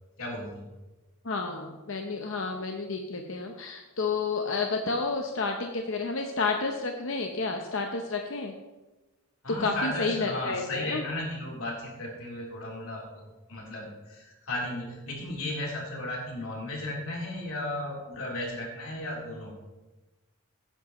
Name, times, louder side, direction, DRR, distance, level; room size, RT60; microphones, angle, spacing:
voice 1, 0.2-0.7 9.4-13.2 13.5-19.5, left 1 dB, 80° left, -3 dB, 3.6 m, -35 dB
voice 2, 1.2-8.5 9.6-11.0, left 4 dB, 60° left, 3 dB, 0.8 m, -30 dB
16.5 x 10.0 x 3.1 m, 1.1 s
head